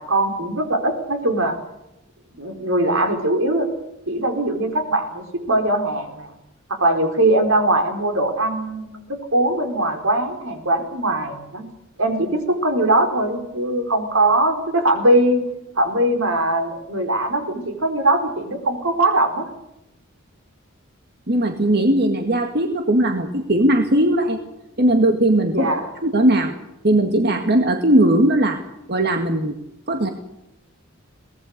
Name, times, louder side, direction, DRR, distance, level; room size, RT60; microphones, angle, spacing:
voice 1, 0.0-1.6 2.3-3.7 4.1-6.3 6.7-11.7 12.0-15.4 15.8-19.5 25.5-25.9, right 1 dB, 80° right, 6 dB, 4.4 m, -21 dB
voice 2, 21.3-24.4 24.8-25.7 26.0-26.5 26.8-28.6 28.9-29.5 29.9-30.1, right 1 dB, 50° right, 5 dB, 1.9 m, -18 dB
23.5 x 18.5 x 6.7 m, 0.90 s
head